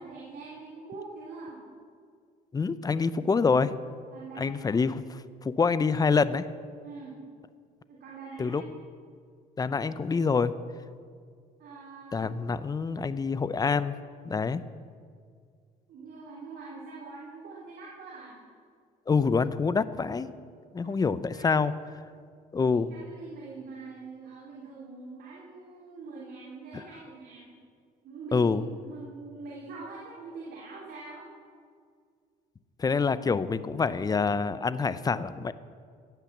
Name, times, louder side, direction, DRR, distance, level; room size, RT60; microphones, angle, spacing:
voice 1, 0.0-1.6 4.1-4.6 6.8-7.2 7.9-8.7 11.6-12.3 15.9-18.4 20.8-20.9 21.3-21.5 22.6-27.5 28.0-31.3, right 4 dB, 65° right, -5 dB, 3.2 m, -44 dB
voice 2, 2.5-3.7 4.4-6.5 8.4-8.6 9.6-10.5 12.1-13.9 14.2-14.6 19.1-20.3 20.7-21.7 22.5-22.9 26.7-26.8 28.3-28.6 32.8-35.5, left 5 dB, 20° left, 14 dB, 0.6 m, -26 dB
16.5 x 9.0 x 7.3 m, 2.1 s
cardioid pair, 110°, 17 cm